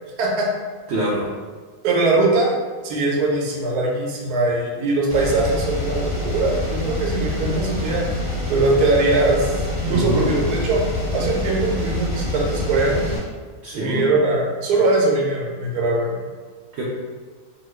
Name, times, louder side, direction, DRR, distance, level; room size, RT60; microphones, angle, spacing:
voice 1, 0.2-0.5 1.8-2.6 2.8-8.1 8.5-10.8 11.1-13.1 13.7-16.2, right 2 dB, 90° right, -2 dB, 1.2 m, -21 dB
voice 2, 0.9-1.3 9.9-10.3 13.6-14.1 16.7-16.8, right 1 dB, 70° right, -6 dB, 0.6 m, -24 dB
sound 1, 5.1-13.2, left 1 dB, 30° left, 1.1 m, -26 dB
2.9 x 2.3 x 3.2 m, 1.5 s
omnidirectional pair, 1.6 m